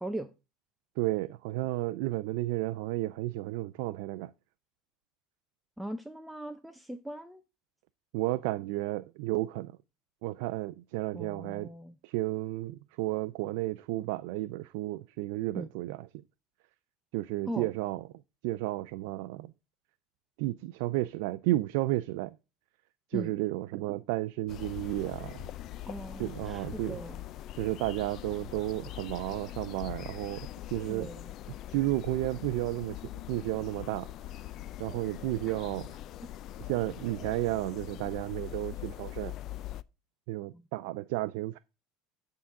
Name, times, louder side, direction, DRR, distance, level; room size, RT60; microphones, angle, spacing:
voice 1, 1.0-4.3 8.1-9.7 10.2-11.7 12.0-16.1 17.1-18.0 18.4-19.5 20.4-22.4 23.1-25.4 26.2-27.0 27.5-31.1 31.7-34.1 34.8-36.0 36.6-39.3 40.3-41.6, right 17 dB, 75° right, 0.4 m, -32 dB
voice 2, 5.8-7.4 11.1-12.0 15.6-15.7 17.5-17.7 23.1-23.3 25.9-27.2 30.9-31.3 40.5-40.6, right 1 dB, 5° right, 0.5 m, -39 dB
sound 1, 24.5-39.8, left 13 dB, 45° left, 0.3 m, -42 dB
9.7 x 3.8 x 5.8 m
supercardioid pair, 135°, 0 cm